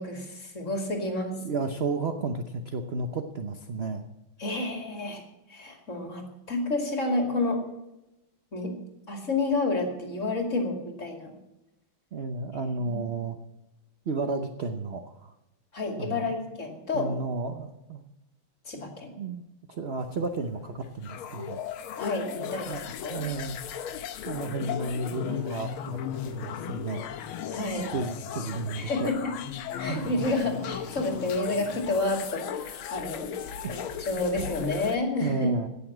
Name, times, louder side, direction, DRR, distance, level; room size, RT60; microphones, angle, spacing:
voice 1, 0.0-1.3 4.4-5.2 5.5-7.6 8.5-8.7 9.1-11.3 12.9-13.1 15.7-17.2 18.6-19.1 22.0-23.2 27.5-27.9 28.8-29.3 29.8-35.5, left 2 dB, 35° left, 2 dB, 2.8 m, -30 dB
voice 2, 1.4-4.1 12.1-13.4 14.1-15.3 16.0-16.4 16.9-18.0 19.2-19.4 19.7-21.6 22.4-22.8 23.1-23.6 24.2-27.0 27.7-29.1 29.9-30.1 33.6-33.8 35.2-35.7, right 3 dB, 60° right, 6 dB, 0.6 m, -32 dB
sound 1, 20.0-35.0, left 9 dB, 85° left, 1.7 m, -36 dB
17.0 x 7.0 x 7.3 m, 0.94 s
omnidirectional pair, 2.3 m